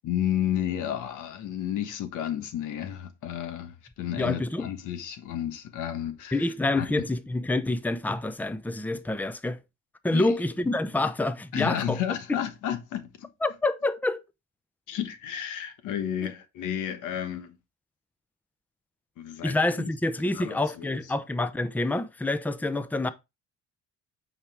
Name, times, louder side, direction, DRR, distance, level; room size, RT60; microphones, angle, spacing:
voice 1, 0.0-7.0 10.1-10.3 11.5-13.3 14.9-17.5 19.2-19.9 20.3-21.0, left 10 dB, 90° left, 1.3 m, -32 dB
voice 2, 4.2-4.6 6.3-9.6 10.0-12.0 13.4-14.2 19.4-23.1, left 2 dB, 5° left, 0.6 m, -27 dB
8.8 x 4.8 x 3.4 m
cardioid pair, 90°, 30 cm